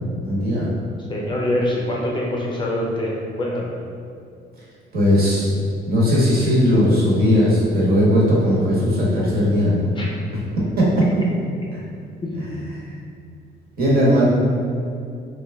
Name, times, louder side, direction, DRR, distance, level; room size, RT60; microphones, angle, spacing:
voice 1, 0.2-0.7 4.9-5.5 5.9-9.9 10.8-11.2 12.9-13.0 13.8-14.3, equal, 55° right, -6 dB, 1.0 m, -18 dB
voice 2, 1.1-3.7 10.0-10.1 12.2-12.8, left 1 dB, 25° left, -3 dB, 0.4 m, -25 dB
3.2 x 2.3 x 3.4 m, 2.4 s
cardioid pair, 145°, 19 cm